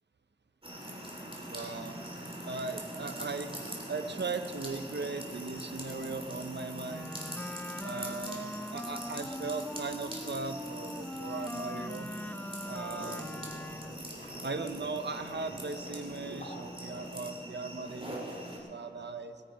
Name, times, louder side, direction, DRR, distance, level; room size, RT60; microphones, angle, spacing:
sound 1, 0.6-18.6, right 1 dB, 30° right, 3.1 m, -43 dB
voice 1, 1.5-2.0 2.5-3.6 3.9-7.1 7.8-12.1 12.7-13.6 14.4-19.4, right 3 dB, 65° right, 8 dB, 0.7 m, -38 dB
Wind instrument woodwind instrument, 6.9-14.1, left 1 dB, 10° left, 0.4 m, -42 dB
sound 2, 12.8-18.0, equal, 40° left, 4.3 m, -49 dB
21.0 x 9.8 x 5.2 m, 2.5 s
wide cardioid pair, 45°, 19 cm